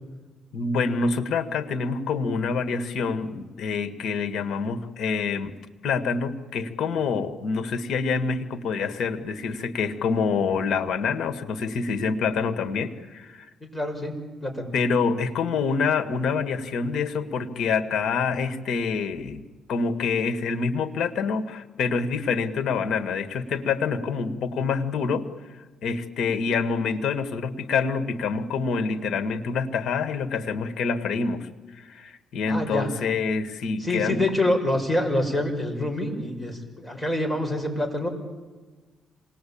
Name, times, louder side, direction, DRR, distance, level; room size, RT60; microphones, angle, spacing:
voice 1, 0.5-5.5 5.8-13.5 14.7-19.4 19.7-25.3 25.8-31.5 31.7-34.2, left 5 dB, 70° left, 10 dB, 2.1 m, -26 dB
voice 2, 13.6-14.1 14.4-14.7 32.5-32.9 33.8-38.1, left 1 dB, 10° left, 3 dB, 6.2 m, -26 dB
27.0 x 20.0 x 8.8 m, 1.3 s
cardioid pair, 90°, 0 cm